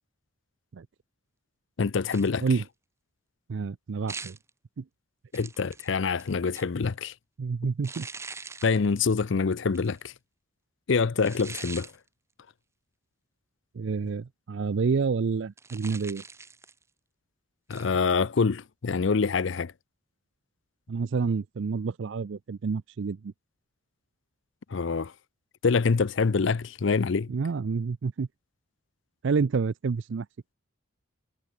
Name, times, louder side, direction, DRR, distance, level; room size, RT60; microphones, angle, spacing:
voice 1, 1.8-2.4 5.3-7.1 8.6-10.1 10.9-11.9 17.7-19.7 24.7-25.1 25.6-27.3, left 5 dB, 65° left, 0.5 m, -25 dB
sound 1, 2.1-2.6 4.1-4.5 5.3-6.9 7.8-8.8 9.7-10.0 11.2-11.9 15.6-16.8 17.7-17.9, right 4 dB, 15° right, 0.7 m, -42 dB
voice 2, 3.5-4.4 4.8-4.9 7.4-8.1 13.7-16.2 20.9-23.3 27.3-28.3 29.2-30.3, right 5 dB, 65° right, 0.4 m, -28 dB
head